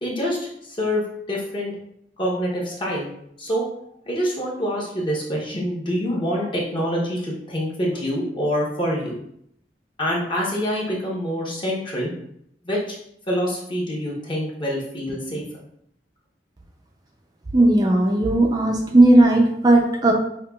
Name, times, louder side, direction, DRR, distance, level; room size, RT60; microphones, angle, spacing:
voice 1, 0.0-1.7 2.2-3.1 3.4-3.6 4.1-9.2 10.0-12.1 12.6-13.0 13.3-15.4, equal, 30° left, -4 dB, 1.0 m, -26 dB
voice 2, 17.5-20.1, right 1 dB, 25° right, 0 dB, 0.4 m, -16 dB
5.5 x 2.8 x 2.3 m, 0.72 s
head